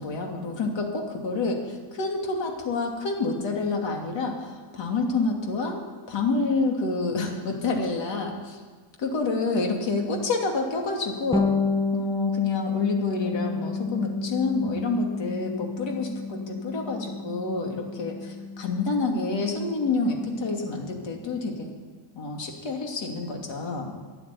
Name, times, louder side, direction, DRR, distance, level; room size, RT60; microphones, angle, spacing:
voice 1, 0.0-8.6 9.0-11.5 11.9-21.5 22.1-23.9, left 3 dB, 60° left, 2 dB, 2.8 m, -28 dB
Bass guitar, 11.3-20.9, left 4 dB, 10° left, 0.7 m, -31 dB
13.0 x 10.0 x 9.6 m, 1.5 s
cardioid pair, 155°, 48 cm